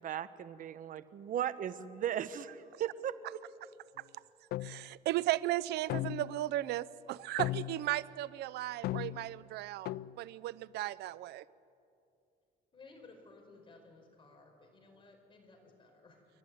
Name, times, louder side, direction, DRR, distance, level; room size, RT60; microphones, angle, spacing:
voice 1, 0.0-3.1, right 10 dB, 55° right, 14 dB, 1.0 m, -37 dB
sound 1, 4.5-4.9 5.9-6.5 7.4-7.9 8.8-9.3 9.8-10.2, left 15 dB, 70° left, 0.4 m, -37 dB
voice 2, 4.6-11.4, right 15 dB, 75° right, 19 dB, 0.6 m, -36 dB
voice 3, 12.7-16.3, left 3 dB, 30° left, 3 dB, 4.7 m, -57 dB
28.0 x 11.5 x 9.3 m, 2.6 s
cardioid pair, 110°, 17 cm